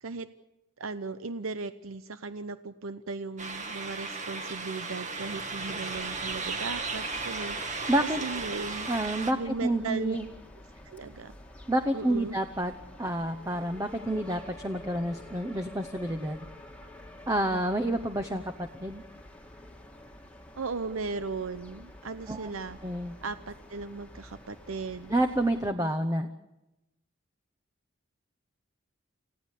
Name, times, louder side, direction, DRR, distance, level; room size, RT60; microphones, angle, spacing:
voice 1, 0.8-8.9 9.4-10.2 10.9-11.4 11.9-12.4 20.6-22.8 23.2-25.1, right 4 dB, 85° right, 12 dB, 0.8 m, -37 dB
sound 1, 3.4-9.3, right 4 dB, 35° right, 2.1 m, -35 dB
sound 2, 5.9-25.7, left 1 dB, 5° left, 1.9 m, -49 dB
voice 2, 7.9-8.2 8.9-10.2 11.7-12.7 13.0-16.5 17.3-19.0 22.3-22.5 22.8-23.2 25.1-26.3, right 1 dB, 15° right, 8 dB, 0.9 m, -29 dB
28.0 x 16.0 x 8.4 m, 0.95 s
head